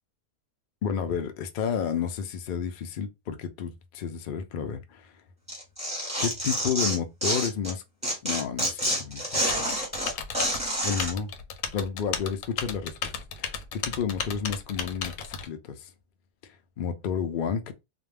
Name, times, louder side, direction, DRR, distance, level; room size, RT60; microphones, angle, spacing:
voice 1, 0.8-5.1 6.2-7.8 8.2-9.7 10.8-11.3 11.7-15.9 16.8-17.7, left 7 dB, 75° left, 0.4 m, -31 dB
Tearing, 5.5-7.7 8.0-11.1, equal, 5° right, 1.0 m, -28 dB
Typing, 9.5-15.5, left 7 dB, 90° left, 1.0 m, -35 dB
2.5 x 2.1 x 3.2 m
omnidirectional pair, 1.5 m